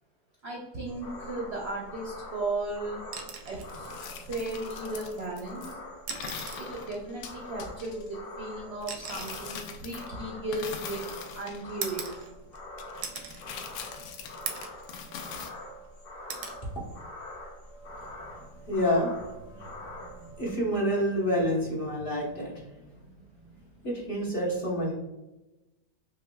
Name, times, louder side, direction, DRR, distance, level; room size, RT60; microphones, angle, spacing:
voice 1, 0.4-3.0 3.4-4.0 4.3-5.6 6.6-11.0 11.3-12.1 20.6-20.8, right 2 dB, 60° right, -2 dB, 0.7 m, -35 dB
sound 1, 0.9-20.5, left 1 dB, 65° left, 0.5 m, -44 dB
sound 2, 3.0-3.8 5.2-5.3 6.0-6.7 7.9-11.0 11.8-12.6 13.0-13.4 13.9-14.0 14.5-14.8 15.3-15.9 16.3-16.6 18.1-18.3, right 6 dB, 85° right, 1.2 m, -40 dB
sound 3, 3.7-5.7 6.1-8.1 8.8-10.2 10.5-12.2 12.8-15.5, left 6 dB, 85° left, 1.2 m, -42 dB
voice 2, 18.6-19.1 19.5-19.7 20.1-22.9 23.8-24.9, equal, 35° left, -6 dB, 1.2 m, -28 dB
5.8 x 2.2 x 2.2 m, 1.0 s
omnidirectional pair, 1.8 m